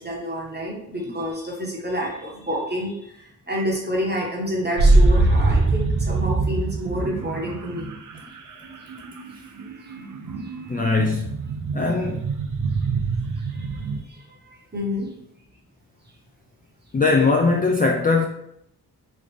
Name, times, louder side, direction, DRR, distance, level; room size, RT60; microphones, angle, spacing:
voice 1, 0.0-8.0 9.6-10.8 13.4-15.1, equal, 25° right, -3 dB, 1.3 m, -29 dB
sound 1, 4.8-14.0, right 2 dB, 50° right, 0.5 m, -23 dB
voice 2, 10.7-11.4 11.7-12.3 16.9-18.3, left 3 dB, 25° left, 1 dB, 0.3 m, -20 dB
3.2 x 2.4 x 3.3 m, 0.75 s
cardioid pair, 50°, 40 cm